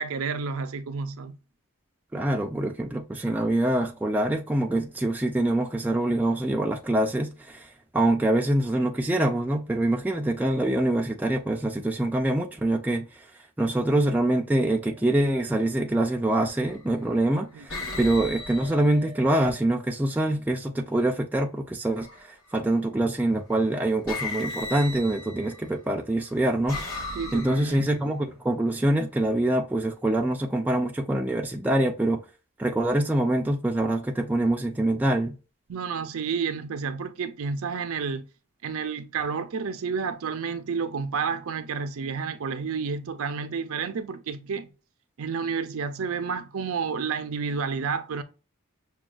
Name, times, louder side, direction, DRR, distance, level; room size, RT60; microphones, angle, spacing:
voice 1, 0.0-1.4 17.5-18.0 27.1-27.9 35.7-38.2 38.6-44.7 45.2-48.2, right 5 dB, 65° right, 0.5 m, -30 dB
voice 2, 2.1-13.0 13.6-27.0 27.3-32.2 32.6-35.4, right 1 dB, 10° right, 0.3 m, -25 dB
sound 1, 15.4-15.7 16.6-17.1 17.7-19.7 21.9-22.5 23.5-23.7 24.1-25.7 26.3-28.0, left 2 dB, 70° left, 1.5 m, -37 dB
6.0 x 2.3 x 2.3 m
head